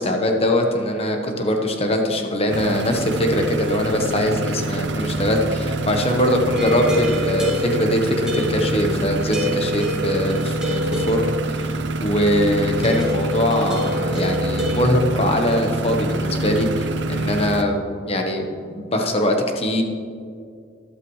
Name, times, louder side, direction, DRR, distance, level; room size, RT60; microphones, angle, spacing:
voice 1, 0.0-17.8 18.1-19.8, left 1 dB, 35° left, 3 dB, 1.1 m, -22 dB
sound 1, 2.5-17.6, right 2 dB, 70° right, 0.7 m, -26 dB
sound 2, 6.6-9.0 9.3-11.6 12.8-14.7, left 1 dB, 5° right, 2.0 m, -27 dB
13.5 x 12.0 x 3.2 m, 2.2 s
head